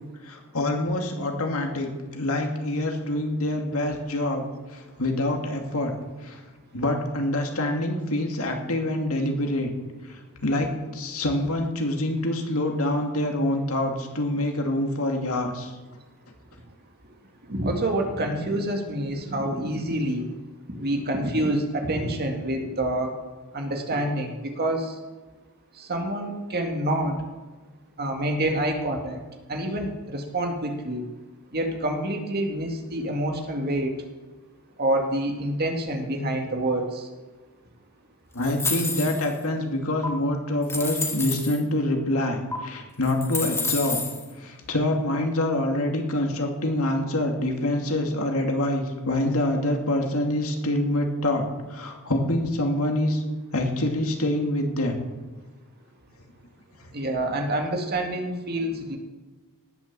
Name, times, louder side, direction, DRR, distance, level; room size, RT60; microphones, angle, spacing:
voice 1, 0.3-4.4 5.0-5.9 6.2-6.4 6.7-9.7 10.4-15.7 38.3-44.0 44.4-51.5 51.7-53.2 53.5-55.0, left 1 dB, 70° left, 2 dB, 2.5 m, -26 dB
voice 2, 17.5-20.3 20.7-23.2 23.5-24.9 25.8-27.2 28.0-29.2 29.5-31.0 31.5-33.9 34.8-37.0 56.9-59.0, right 1 dB, 45° right, 3 dB, 2.1 m, -27 dB
sound 1, 38.4-39.4 40.0-40.1 40.6-41.6 42.5-42.6 43.0-44.2, left 3 dB, 10° left, 1.7 m, -29 dB
18.5 x 7.1 x 7.5 m, 1.3 s
head